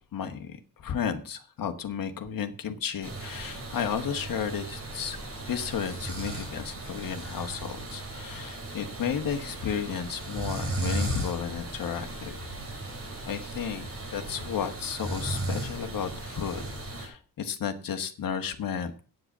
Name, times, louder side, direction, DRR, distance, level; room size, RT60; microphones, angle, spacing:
voice 1, 0.1-5.2 5.5-12.4 13.3-16.6 17.0-18.9, left 7 dB, 55° left, 7 dB, 1.4 m, -33 dB
sound 1, 3.0-17.1, right 2 dB, 35° right, 3.9 m, -36 dB
8.9 x 7.9 x 7.2 m, 0.39 s
wide cardioid pair, 175°, 40 cm